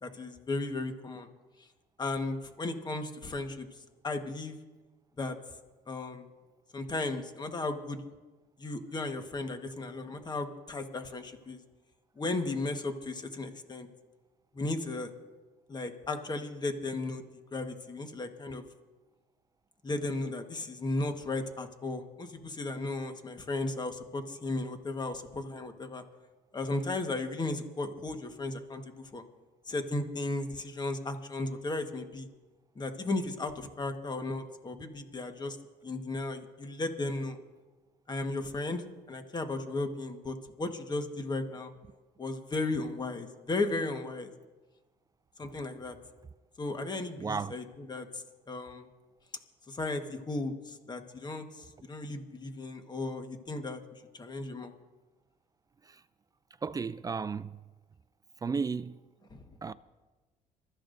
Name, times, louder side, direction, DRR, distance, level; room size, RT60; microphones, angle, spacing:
voice 1, 0.0-1.3 2.0-3.7 4.0-4.6 5.2-5.4 5.9-6.3 6.7-8.0 8.6-11.6 12.2-13.9 14.5-15.1 15.7-17.2 17.5-18.6 19.8-26.0 26.5-29.2 29.7-32.3 32.7-35.6 35.8-37.4 38.1-41.7 42.2-44.3 45.4-46.0 46.6-48.9 49.7-53.8 54.1-54.7 59.3-59.4, left 2 dB, 25° left, 1.3 m, -35 dB
voice 2, 47.2-47.5 56.6-57.5 58.4-59.0 59.6-59.7, right 5 dB, 20° right, 0.4 m, -33 dB
27.0 x 13.5 x 2.6 m
cardioid pair, 110°, 17 cm